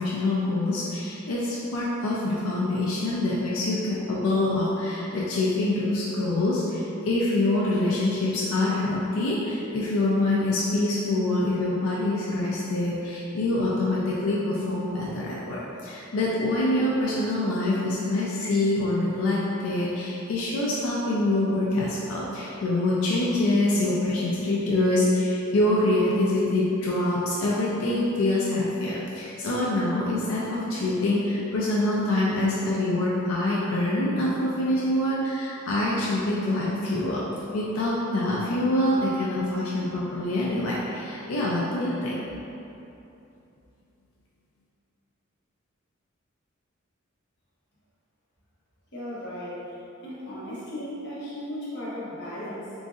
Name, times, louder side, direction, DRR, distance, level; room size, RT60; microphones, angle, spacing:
voice 1, 0.0-37.2 37.5-42.3, left 2 dB, 80° left, -6 dB, 0.4 m, -25 dB
voice 2, 48.9-49.8 50.0-52.7, left 1 dB, 55° left, -9 dB, 0.9 m, -36 dB
3.8 x 2.6 x 2.4 m, 2.8 s
head